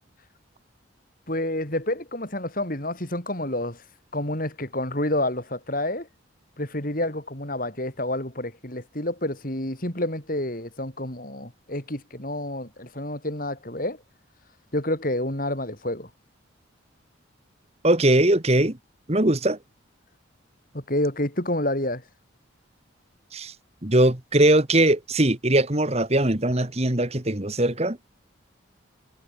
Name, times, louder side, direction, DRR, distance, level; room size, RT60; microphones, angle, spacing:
voice 1, 1.3-3.8 4.1-6.1 6.6-14.0 14.7-16.1 20.7-22.0, left 1 dB, 45° left, 4.6 m, -29 dB
voice 2, 17.8-18.8 19.1-19.6 23.3-23.5 23.8-28.0, right 1 dB, 30° right, 1.7 m, -20 dB
head